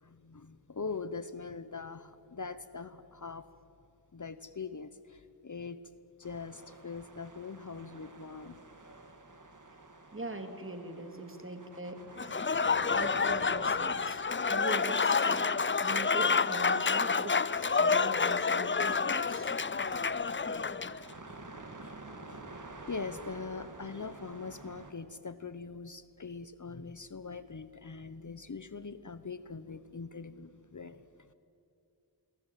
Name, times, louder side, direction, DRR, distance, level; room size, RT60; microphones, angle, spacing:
voice 1, 0.0-3.4 4.1-5.8 6.2-8.6 21.8-21.9 22.3-22.4 22.9-31.0, left 4 dB, 45° left, 13 dB, 0.9 m, -42 dB
sound 1, 6.2-24.9, right 2 dB, 45° right, 2.4 m, -51 dB
voice 2, 10.1-12.0 12.9-15.5 15.8-17.5 17.8-19.5, right 1 dB, 30° right, 6 dB, 2.8 m, -41 dB
Applause / Crowd, 12.2-21.0, left 5 dB, 30° left, 0.5 m, -29 dB
26.0 x 21.5 x 9.2 m, 2.6 s
wide cardioid pair, 70°, 42 cm